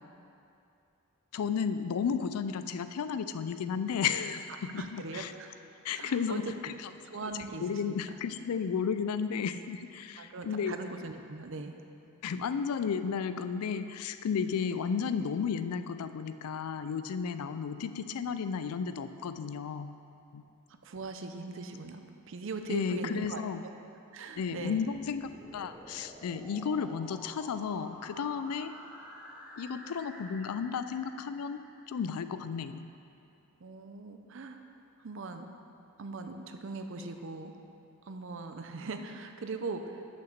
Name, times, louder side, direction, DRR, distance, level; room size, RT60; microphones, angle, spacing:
voice 1, 1.3-5.3 5.8-7.3 7.6-10.8 12.2-19.9 20.3-20.5 22.7-23.6 24.4-28.7 29.6-31.6 31.9-32.9, left 6 dB, 90° left, 11 dB, 0.4 m, -33 dB
voice 2, 4.7-5.5 5.9-6.4 7.1-8.2 10.2-11.7 20.8-23.4 24.1-24.8 33.6-34.6 35.0-35.5 36.0-37.5 38.1-40.0, right 3 dB, 60° right, 6 dB, 0.5 m, -40 dB
sound 1, 24.4-32.3, equal, 5° right, 0.7 m, -51 dB
6.5 x 5.7 x 6.5 m, 2.6 s
head